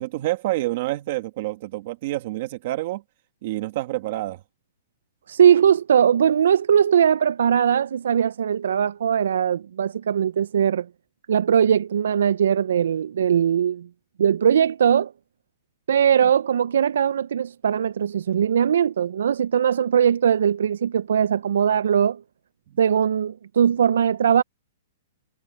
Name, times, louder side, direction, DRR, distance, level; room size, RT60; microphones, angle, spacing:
voice 1, 0.0-3.0 3.4-4.4 22.7-22.8, right 17 dB, 35° right, 1.4 m, -28 dB
voice 2, 5.3-10.9 11.3-13.9 14.2-15.1 15.9-22.2 22.8-24.4, right 8 dB, 75° right, 0.3 m, -20 dB
hypercardioid pair, 180°, 0 cm